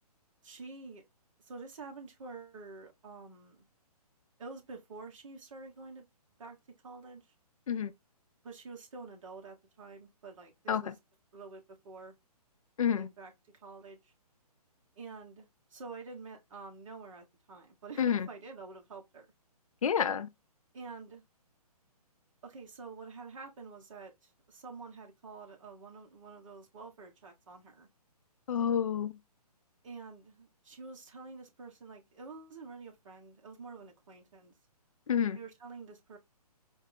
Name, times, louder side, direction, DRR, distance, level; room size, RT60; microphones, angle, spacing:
voice 1, 0.4-1.0 1.4-3.7 4.4-6.1 6.4-6.6 6.8-7.2 8.4-10.9 11.3-12.1 12.9-14.1 15.0-19.3 20.7-21.2 22.4-27.9 29.8-34.5 35.3-36.2, right 4 dB, 50° right, 1.4 m, -48 dB
voice 2, 19.8-20.3 28.5-29.2 35.1-35.4, left 8 dB, 60° left, 0.5 m, -29 dB
4.5 x 2.1 x 3.9 m
figure-of-eight pair, 140°, 20 cm